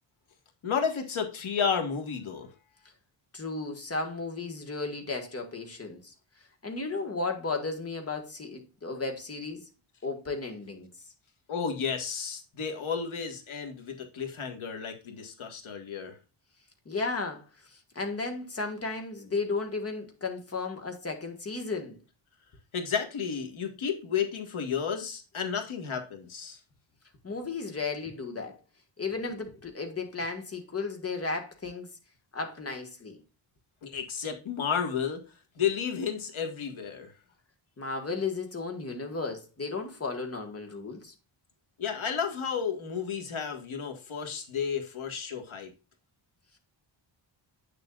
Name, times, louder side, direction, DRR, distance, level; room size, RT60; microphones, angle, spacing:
voice 1, 0.6-2.5 11.5-16.2 22.7-26.6 33.8-35.2 35.6-37.1 41.8-45.7, left 6 dB, 85° left, 1.7 m, -32 dB
voice 2, 3.3-6.1 6.6-9.6 10.0-10.9 16.8-22.0 27.2-28.6 29.0-31.9 32.3-33.2 37.8-41.1, left 3 dB, 30° left, 1.6 m, -34 dB
8.6 x 6.8 x 2.4 m
wide cardioid pair, 165°, 47 cm